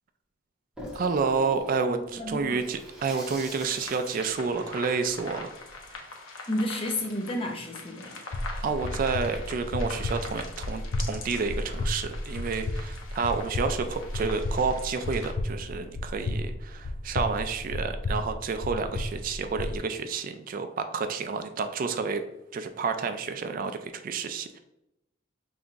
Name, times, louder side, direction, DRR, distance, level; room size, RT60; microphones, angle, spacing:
Water tap faucet / Sink (filling or washing), 0.8-6.0, equal, 5° right, 1.2 m, -44 dB
voice 1, 0.9-5.5 5.9-6.1 8.2-8.4 8.6-22.2 22.5-24.6, right 5 dB, 45° right, 8 dB, 0.3 m, -30 dB
voice 2, 1.9-2.7 5.9-6.0 6.5-8.2, left 1 dB, 30° left, 2 dB, 0.7 m, -32 dB
sound 1, 3.5-15.3, left 3 dB, 90° left, 0.8 m, -44 dB
sound 2, 8.3-19.8, left 1 dB, 65° left, 0.5 m, -33 dB
5.4 x 3.4 x 2.4 m, 0.88 s
head